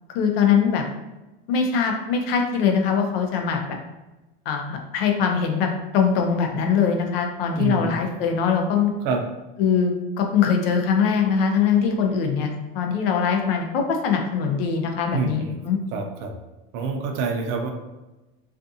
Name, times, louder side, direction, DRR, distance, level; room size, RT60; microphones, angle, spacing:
voice 1, 0.1-0.8 1.5-3.8 4.5-8.9 9.6-15.8, left 6 dB, 80° left, 3 dB, 0.6 m, -22 dB
voice 2, 7.6-7.9 9.0-9.2 15.1-15.6 15.9-16.3 16.7-17.7, right 5 dB, 55° right, 4 dB, 0.5 m, -26 dB
2.5 x 2.4 x 2.6 m, 1.0 s
supercardioid pair, 140°, 29 cm